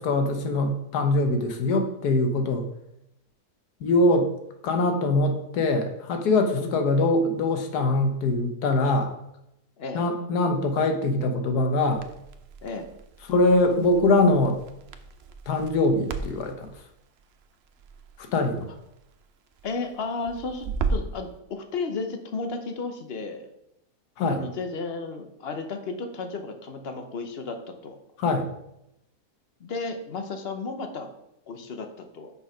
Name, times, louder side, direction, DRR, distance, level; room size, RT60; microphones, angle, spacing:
voice 1, 0.0-2.6 3.8-4.3 4.6-9.1 9.9-12.0 13.3-14.6 15.5-16.7 18.3-18.7 24.2-24.4 28.2-28.5, left 2 dB, 85° left, 5 dB, 1.5 m, -23 dB
Crackle, 11.9-21.2, right 4 dB, 65° right, 0.6 m, -36 dB
voice 2, 19.6-23.5 24.3-28.0 29.6-31.1 31.5-32.3, left 4 dB, 50° left, 6 dB, 0.9 m, -33 dB
6.4 x 5.6 x 5.0 m, 0.83 s
omnidirectional pair, 1.6 m